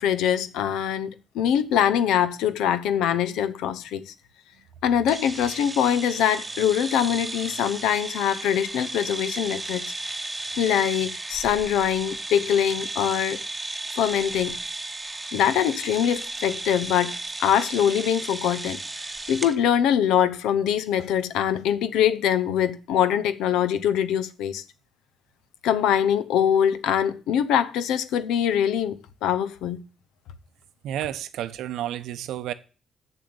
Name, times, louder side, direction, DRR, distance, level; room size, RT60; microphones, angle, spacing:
voice 1, 0.0-4.1 4.8-9.9 10.6-13.4 13.9-14.6 15.3-17.1 17.4-18.8 19.3-24.6 25.6-29.8, left 9 dB, 90° left, 0.7 m, -23 dB
sound 1, 5.1-19.6, right 2 dB, 20° right, 0.9 m, -34 dB
voice 2, 30.8-32.5, right 12 dB, 85° right, 0.7 m, -31 dB
7.2 x 6.9 x 7.9 m
cardioid pair, 90°, 0 cm